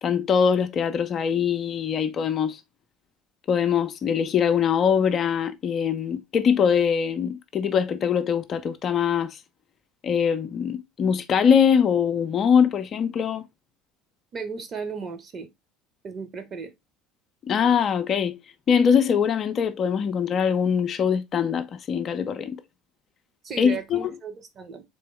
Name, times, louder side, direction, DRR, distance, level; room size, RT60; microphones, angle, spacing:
voice 1, 0.0-2.6 3.5-9.4 10.0-13.4 17.5-18.4 18.7-22.6 23.6-24.1, left 7 dB, 40° left, 0.5 m, -22 dB
voice 2, 14.3-15.5 16.0-16.7 23.4-24.8, right 5 dB, 40° right, 1.0 m, -35 dB
3.8 x 3.4 x 3.2 m
figure-of-eight pair, 65°, 0 cm